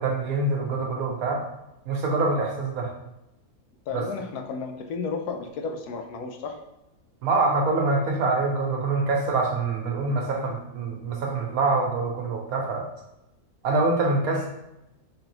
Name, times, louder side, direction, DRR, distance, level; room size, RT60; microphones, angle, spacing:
voice 1, 0.0-1.4 1.9-2.9 3.9-4.1 7.2-12.9 13.6-14.5, right 3 dB, 75° right, 1 dB, 1.1 m, -25 dB
voice 2, 3.9-6.6, left 4 dB, 80° left, 4 dB, 1.1 m, -33 dB
3.8 x 3.3 x 2.9 m, 0.91 s
omnidirectional pair, 1.6 m